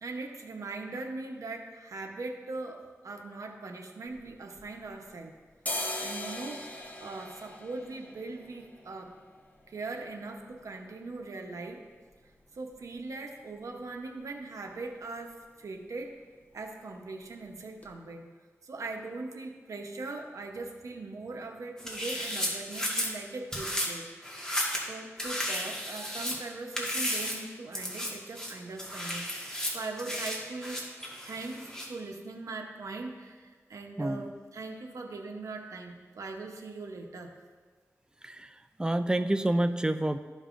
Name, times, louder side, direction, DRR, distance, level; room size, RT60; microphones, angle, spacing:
voice 1, 0.0-5.3 6.0-9.1 9.7-11.8 12.5-16.1 16.5-18.3 18.6-24.1 24.9-30.8 31.2-37.3, right 3 dB, 80° right, 3 dB, 0.8 m, -40 dB
sound 1, 4.1-5.1 5.5-13.2 13.5-13.6 13.9-14.4 14.7-14.9 15.2-15.5 15.7-16.4 16.8-16.9 17.4-17.5 17.8-17.9, left 1 dB, 30° left, 0.9 m, -42 dB
sound 2, 21.8-23.1 23.5-23.9 24.2-24.9 25.2-26.4 26.7-27.4 27.7-28.1 28.3-31.9, equal, 10° left, 1.6 m, -33 dB
voice 2, 38.2-40.2, right 1 dB, 15° right, 9 dB, 0.4 m, -28 dB
13.0 x 5.4 x 2.5 m, 1.5 s
wide cardioid pair, 70°, 5 cm